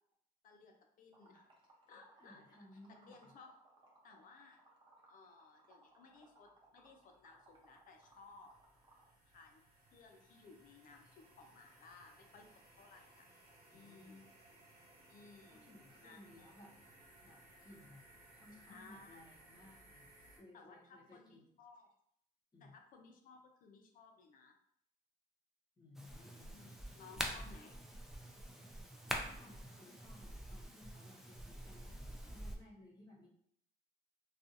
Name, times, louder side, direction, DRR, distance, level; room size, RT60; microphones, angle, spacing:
voice 1, 0.4-1.5 1.9-2.4 3.1-3.5 4.0-4.6 5.1-8.5 9.3-9.6 9.9-13.3 13.7-14.3 15.0-16.5 18.7-19.2 20.5-21.9 22.6-24.6 26.4-27.8, left 4 dB, 55° left, 4 dB, 0.5 m, -60 dB
Liquid, 1.1-9.1, right 2 dB, 30° right, 0.7 m, -66 dB
voice 2, 2.2-3.3 13.7-14.3 15.5-16.7 17.2-18.0 18.3-21.5 22.5-22.7 25.8-26.6 29.2-33.3, left 1 dB, 25° left, -5 dB, 0.9 m, -60 dB
sound 1, 6.5-20.4, right 1 dB, 65° right, 1.0 m, -64 dB
sound 2, 25.9-32.6, equal, ahead, 0.3 m, -46 dB
2.6 x 2.4 x 2.5 m, 0.70 s
cardioid pair, 110°, 17 cm